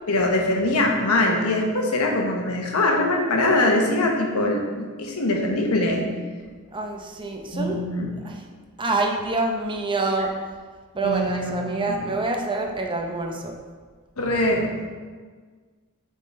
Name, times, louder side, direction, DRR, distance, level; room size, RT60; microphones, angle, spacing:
voice 1, 0.1-6.2 7.5-8.1 11.0-11.5 11.9-12.0 14.2-14.9, left 2 dB, 85° left, 1 dB, 1.0 m, -22 dB
voice 2, 6.7-7.8 8.2-8.4 8.8-10.3 10.9-13.6, right 3 dB, 20° right, 2 dB, 0.6 m, -26 dB
7.4 x 3.7 x 4.2 m, 1.5 s
head